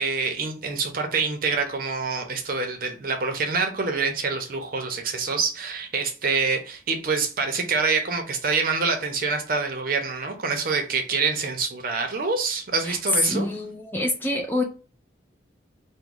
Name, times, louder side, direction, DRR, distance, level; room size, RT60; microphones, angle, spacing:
voice 1, 0.0-13.5, right 4 dB, 50° right, 4 dB, 0.6 m, -26 dB
voice 2, 13.3-14.6, left 1 dB, 10° left, 2 dB, 0.4 m, -27 dB
3.0 x 2.1 x 3.7 m, 0.36 s
head